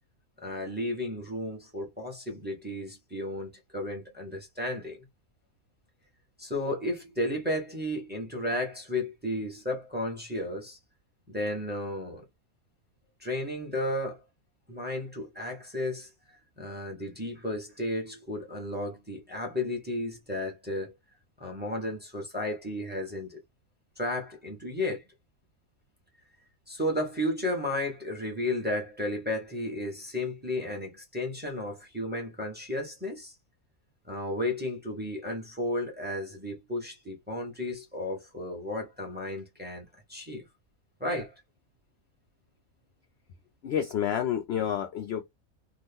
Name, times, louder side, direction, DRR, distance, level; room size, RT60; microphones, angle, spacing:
voice 1, 0.4-5.0 6.4-10.8 11.3-12.2 13.2-14.2 14.7-16.1 16.6-20.9 21.4-23.4 24.0-25.0 26.7-33.3 34.1-40.5 41.0-41.3, left 1 dB, 10° right, 0.8 m, -33 dB
voice 2, 43.6-45.2, left 9 dB, 65° left, 0.6 m, -29 dB
2.8 x 2.4 x 3.5 m
omnidirectional pair, 1.5 m